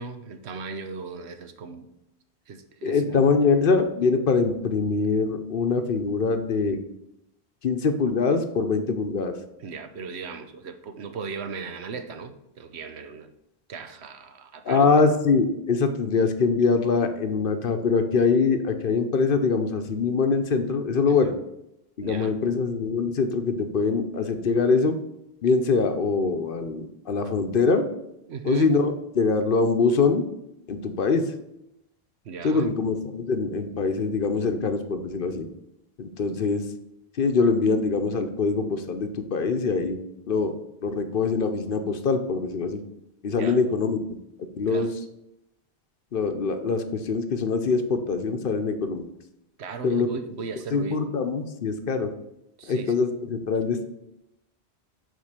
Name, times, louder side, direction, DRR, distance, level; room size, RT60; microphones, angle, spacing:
voice 1, 0.0-1.9 2.5-3.3 9.6-13.3 13.7-14.9 21.1-21.4 22.0-22.3 28.3-28.7 32.2-32.8 43.4-43.6 44.7-44.9 49.6-51.0 52.6-53.0, right 5 dB, 80° right, 9 dB, 1.1 m, -37 dB
voice 2, 2.8-6.8 7.6-9.3 14.6-21.3 22.0-25.0 25.4-27.9 28.4-30.3 30.7-31.3 32.4-35.5 36.0-36.7 37.2-40.0 40.3-40.5 40.8-42.8 43.2-44.0 44.6-44.9 46.1-49.1 49.8-50.1 50.7-52.1 52.7-53.8, left 4 dB, 55° left, 7 dB, 0.9 m, -23 dB
8.8 x 3.7 x 6.6 m, 0.84 s
omnidirectional pair, 1.1 m